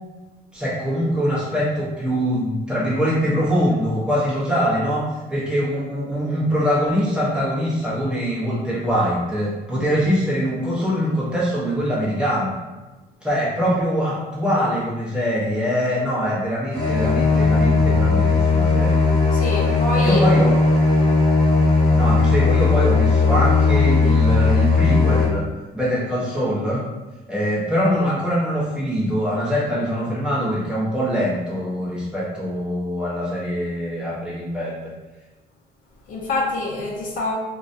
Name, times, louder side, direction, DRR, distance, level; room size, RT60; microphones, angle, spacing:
voice 1, 0.5-12.5 13.2-19.0 20.0-20.6 21.9-25.5 25.7-26.8 27.3-34.7, equal, 5° right, -8 dB, 0.9 m, -23 dB
sound 1, 16.7-25.2, left 3 dB, 10° left, 1.4 m, -17 dB
voice 2, 19.3-20.2 36.1-37.3, left 2 dB, 55° left, -2 dB, 0.5 m, -25 dB
2.3 x 2.2 x 2.6 m, 1.2 s
cardioid pair, 110°, 17 cm